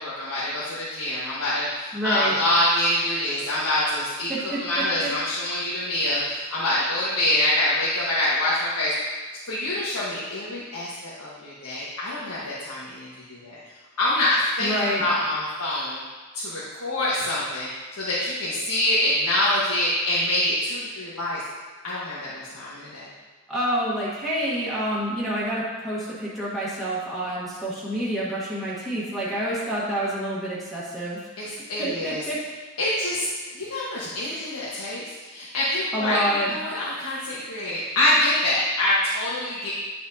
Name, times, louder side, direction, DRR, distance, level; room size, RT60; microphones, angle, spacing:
voice 1, 0.0-8.9 9.5-13.6 14.0-16.0 16.3-21.4 21.8-23.1 31.4-32.2 32.8-33.3 33.5-39.7, left 1 dB, 80° left, -8 dB, 1.4 m, -25 dB
voice 2, 1.9-2.3 4.3-5.1 14.6-15.0 23.5-31.5 31.8-32.6 35.9-36.5, right 1 dB, ahead, -9 dB, 1.4 m, -28 dB
10.5 x 5.9 x 2.8 m, 1.3 s
head